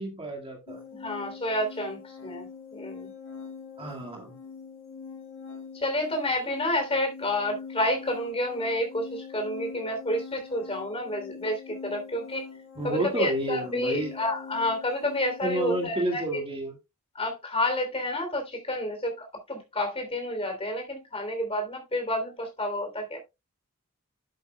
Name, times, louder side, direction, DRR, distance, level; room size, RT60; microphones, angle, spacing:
voice 1, 0.0-0.8 3.8-4.4 12.8-14.1 15.4-16.8, right 1 dB, 25° right, 1.9 m, -30 dB
sound 1, 0.7-15.8, left 5 dB, 65° left, 4.1 m, -43 dB
voice 2, 0.9-3.1 5.7-12.5 12.8-16.4 17.1-23.2, left 1 dB, 25° left, 3.2 m, -30 dB
11.0 x 8.5 x 2.2 m
head